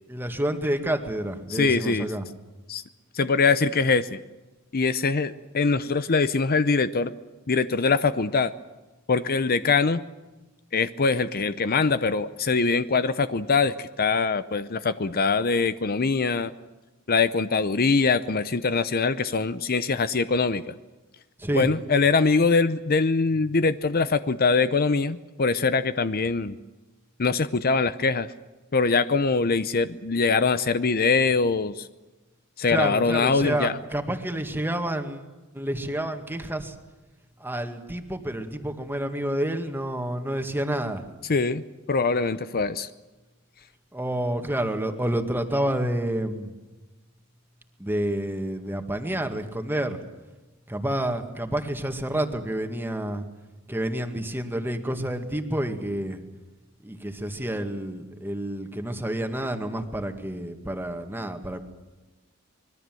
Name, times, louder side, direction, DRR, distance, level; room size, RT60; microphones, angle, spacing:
voice 1, 0.1-2.2 21.4-21.7 32.7-35.2 35.6-36.6 37.4-41.0 43.9-46.5 47.8-50.0 50.7-53.2 53.7-56.2 56.9-61.6, right 1 dB, 10° right, 6 dB, 2.0 m, -29 dB
voice 2, 1.5-2.1 2.7-2.8 3.1-4.2 4.7-7.1 7.5-8.5 9.1-10.0 10.7-16.5 17.1-20.7 21.5-26.6 27.2-28.3 28.7-31.9 32.6-33.8 41.2-41.6 41.9-42.9, left 4 dB, 45° left, 13 dB, 0.7 m, -23 dB
25.5 x 21.5 x 7.7 m, 1.1 s
head